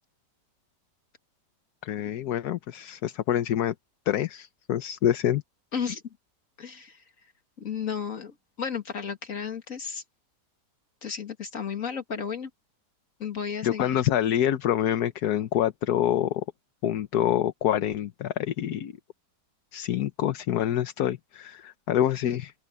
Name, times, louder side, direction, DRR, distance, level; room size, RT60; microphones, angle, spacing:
voice 1, 1.8-3.7 4.1-5.4 13.6-16.4 16.8-18.9 19.7-22.5, left 11 dB, 65° left, 1.3 m, -26 dB
voice 2, 6.6-7.0 7.6-10.0 11.0-12.5 13.2-14.0, left 7 dB, 50° left, 2.5 m, -33 dB
open air
omnidirectional pair, 1.8 m